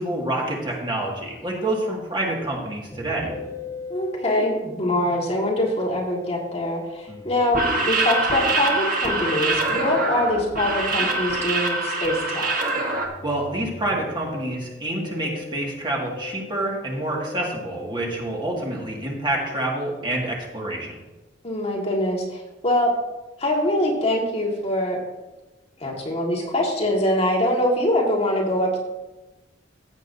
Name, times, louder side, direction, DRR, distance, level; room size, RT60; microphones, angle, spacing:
voice 1, 0.0-3.3 7.1-7.2 13.2-21.0, right 1 dB, 25° right, -2 dB, 2.1 m, -27 dB
Musical instrument, 2.9-20.5, left 3 dB, 20° left, 1.3 m, -41 dB
voice 2, 3.9-12.5 21.4-22.9 23.4-25.0 25.8-28.8, left 1 dB, 35° left, -2 dB, 1.9 m, -23 dB
sound 1, 7.4-13.1, right 2 dB, 50° right, 1.5 m, -24 dB
15.0 x 8.3 x 2.7 m, 1.1 s
head